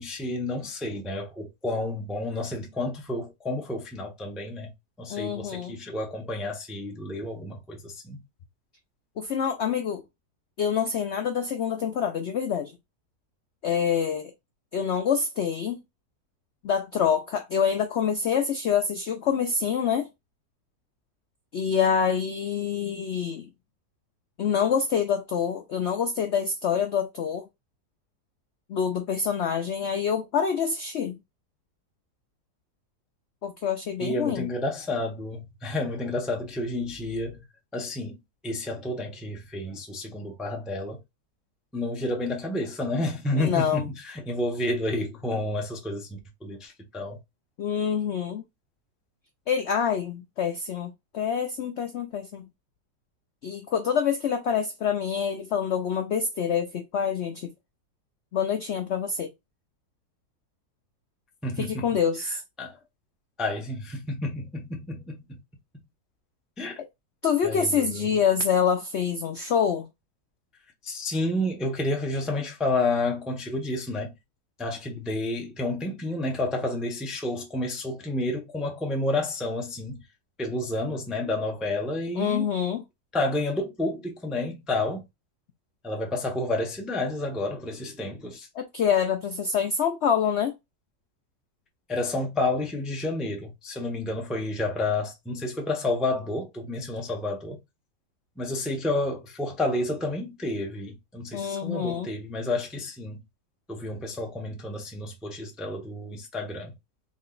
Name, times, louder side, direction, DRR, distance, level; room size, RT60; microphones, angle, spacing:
voice 1, 0.0-4.7 5.0-8.2 34.0-37.4 37.7-38.1 38.4-41.0 41.7-47.2 61.4-61.9 62.6-62.8 63.4-65.4 66.6-66.8 67.4-68.1 70.8-74.1 74.6-80.0 80.4-82.5 83.1-85.0 85.8-88.5 91.9-97.6 98.4-103.2 103.7-106.7, left 2 dB, ahead, 0.4 m, -30 dB
voice 2, 5.1-5.8 9.2-10.0 10.6-12.7 13.6-14.3 14.7-15.8 16.6-20.1 21.5-23.5 24.4-27.4 28.7-31.2 33.4-34.5 43.4-43.8 47.6-48.4 49.5-52.5 53.4-57.5 58.3-59.3 61.6-62.4 67.2-69.9 82.2-82.8 88.6-90.5 101.3-102.1, left 7 dB, 70° left, 0.6 m, -26 dB
3.8 x 2.1 x 3.8 m
omnidirectional pair, 1.8 m